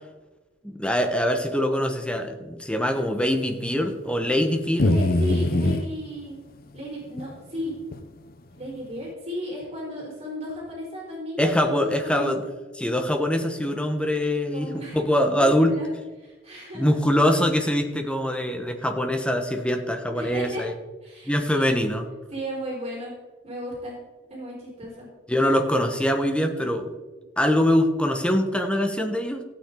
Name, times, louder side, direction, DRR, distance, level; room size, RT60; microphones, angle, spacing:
voice 1, 0.6-4.9 11.4-12.4 12.7-15.7 16.7-20.7 21.3-22.1 25.3-26.9 27.4-29.4, left 1 dB, 5° left, 4 dB, 1.4 m, -23 dB
sound 1, 4.8-5.8 7.2-7.3 7.9-8.0, left 1 dB, 50° left, 0.8 m, -21 dB
voice 2, 4.8-6.4 6.7-7.7 8.6-12.5 14.5-15.5 15.8-15.9 16.2-17.0 20.1-20.6 21.0-21.8 22.3-23.1 23.4-24.0 24.3-25.1, equal, 35° right, -4 dB, 4.7 m, -35 dB
15.5 x 9.0 x 3.9 m, 1.2 s
head